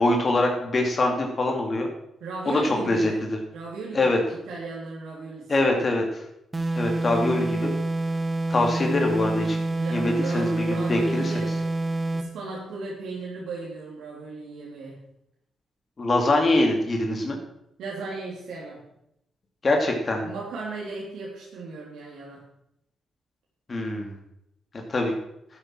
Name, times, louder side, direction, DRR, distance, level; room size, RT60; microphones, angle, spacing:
voice 1, 0.0-1.9 2.5-3.3 3.9-4.2 5.5-6.0 6.8-7.7 8.5-9.6 9.9-11.3 16.0-17.4 19.6-20.3 23.7-24.1 24.9-25.1, left 2 dB, 40° left, 2 dB, 2.4 m, -23 dB
voice 2, 2.2-3.2 3.5-5.9 9.7-11.7 12.1-15.0 17.8-18.8 20.2-22.4, right 3 dB, 85° right, -4 dB, 3.0 m, -36 dB
sound 1, 6.5-12.3, right 2 dB, 25° right, 1.4 m, -27 dB
12.0 x 7.8 x 6.0 m, 0.79 s
cardioid pair, 75°, 0 cm